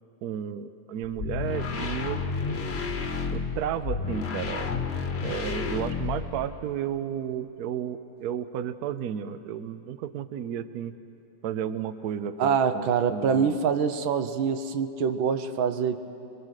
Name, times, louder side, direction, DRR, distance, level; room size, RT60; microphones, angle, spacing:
voice 1, 0.2-2.2 3.3-4.7 5.2-11.0 11.4-13.6, right 9 dB, 65° right, 12 dB, 1.1 m, -33 dB
sound 1, 1.0-6.5, left 4 dB, 40° left, 1.2 m, -31 dB
voice 2, 12.4-16.0, right 6 dB, 80° right, 10 dB, 1.7 m, -25 dB
24.5 x 23.5 x 6.5 m, 2.8 s
omnidirectional pair, 2.1 m